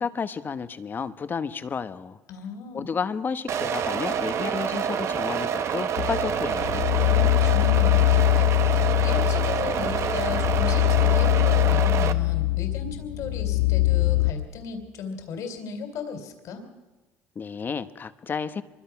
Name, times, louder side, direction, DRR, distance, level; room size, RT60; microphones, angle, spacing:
voice 1, 0.0-2.2 2.7-7.0 17.3-18.6, left 6 dB, 35° left, 11 dB, 1.1 m, -31 dB
voice 2, 2.3-2.9 7.1-16.6, left 6 dB, 65° left, 7 dB, 3.3 m, -36 dB
sound 1, 3.5-12.1, right 8 dB, 50° right, 1.1 m, -27 dB
sound 2, 6.0-14.3, left 19 dB, 90° left, 1.5 m, -22 dB
24.0 x 23.0 x 5.9 m, 1.2 s
supercardioid pair, 95°, 6 cm